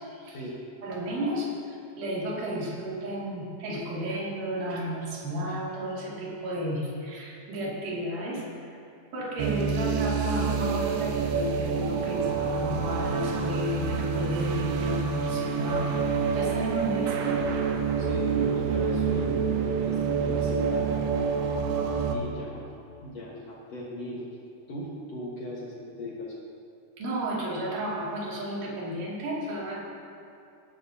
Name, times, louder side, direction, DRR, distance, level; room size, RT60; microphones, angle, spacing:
voice 1, 0.8-8.8 9.1-15.9 16.3-17.5 27.0-29.8, equal, 55° right, -6 dB, 3.6 m, -33 dB
sound 1, 9.4-22.2, right 5 dB, 80° right, 2.8 m, -27 dB
voice 2, 18.0-20.9 22.1-22.7 23.0-24.3 24.7-26.3, equal, 65° left, -5 dB, 1.6 m, -38 dB
18.0 x 11.5 x 2.8 m, 2.6 s
omnidirectional pair, 4.9 m